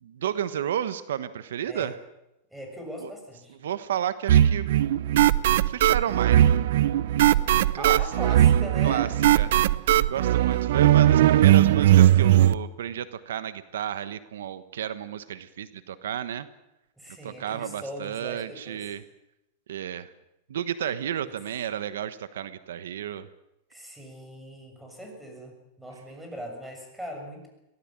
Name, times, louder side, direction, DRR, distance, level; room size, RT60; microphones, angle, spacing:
voice 1, 0.0-1.9 3.0-3.1 3.6-4.8 5.7-6.5 7.7-8.0 8.3-8.4 8.8-9.1 9.4-9.5 10.1-16.5 17.2-19.0 19.7-20.1 20.5-23.3, right 10 dB, 90° right, 13 dB, 1.2 m, -32 dB
voice 2, 2.5-3.6 7.8-9.1 10.1-10.6 11.7-11.8 17.0-18.9 21.2-21.3 23.7-27.5, equal, 5° right, 3 dB, 7.0 m, -40 dB
sound 1, 4.3-12.5, right 12 dB, 75° right, 0.8 m, -19 dB
23.0 x 17.5 x 8.9 m, 0.90 s
supercardioid pair, 135°, 0 cm